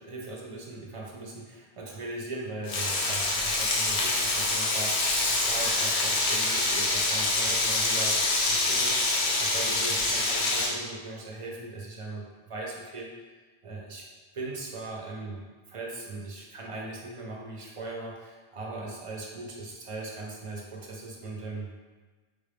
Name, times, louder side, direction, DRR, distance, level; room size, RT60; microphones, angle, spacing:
voice 1, 0.0-13.3 13.6-14.1 14.3-21.7, right 2 dB, 40° right, -1 dB, 0.5 m, -39 dB
Frying (food), 2.7-10.7, left 2 dB, 80° left, 0.9 m, -26 dB
3.5 x 2.5 x 3.4 m, 1.4 s
omnidirectional pair, 1.1 m